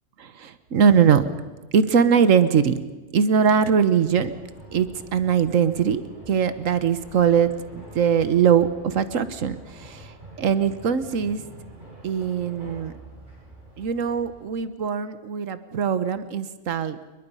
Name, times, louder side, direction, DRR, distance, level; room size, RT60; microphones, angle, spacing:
voice 1, 0.2-1.3 1.7-2.7 3.1-4.3 4.7-11.4 12.0-12.9 13.8-17.0, right 7 dB, 90° right, 12 dB, 1.4 m, -21 dB
sound 1, 4.0-14.4, right 1 dB, 40° right, 6.1 m, -45 dB
29.0 x 21.5 x 5.5 m, 1.2 s
omnidirectional pair, 1.3 m